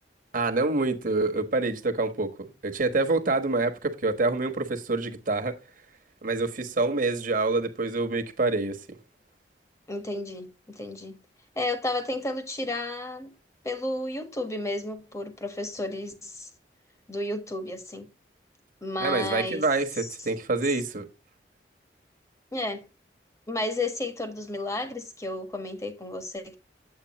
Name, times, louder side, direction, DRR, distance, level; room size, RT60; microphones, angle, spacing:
voice 1, 0.3-5.6 6.2-8.8 19.0-21.0, right 3 dB, 50° right, 1.3 m, -26 dB
voice 2, 9.9-11.2 11.5-13.3 13.6-16.5 17.1-18.1 18.8-19.7 20.0-20.1 22.5-22.9 23.5-26.6, left 2 dB, 20° left, 1.4 m, -32 dB
9.1 x 8.1 x 2.9 m
head